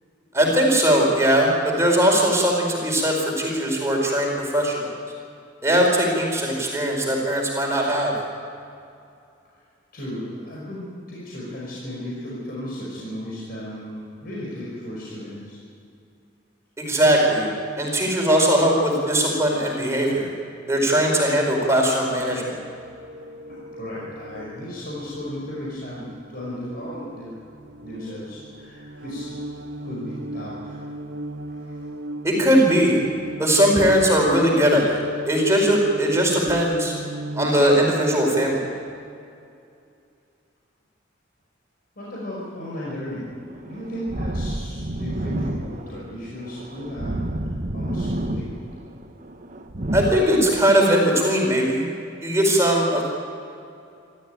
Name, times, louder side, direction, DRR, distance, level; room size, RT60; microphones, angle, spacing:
voice 1, 0.3-4.9 5.6-8.1 16.8-17.5 17.8-20.3 20.7-22.6 32.2-33.0 33.4-36.9 37.3-38.7 49.9-51.9 52.2-53.1, equal, 15° right, -1 dB, 4.7 m, -20 dB
voice 2, 9.9-15.6 23.2-27.4 27.8-29.3 29.8-30.9 31.6-31.7 42.0-43.4 43.7-48.6, equal, 50° left, -6 dB, 5.4 m, -35 dB
sound 1, 22.2-38.5, right 1 dB, 70° right, 1.7 m, -37 dB
sound 2, 43.0-50.1, right 1 dB, 40° right, 1.2 m, -30 dB
27.0 x 13.5 x 9.2 m, 2.5 s
head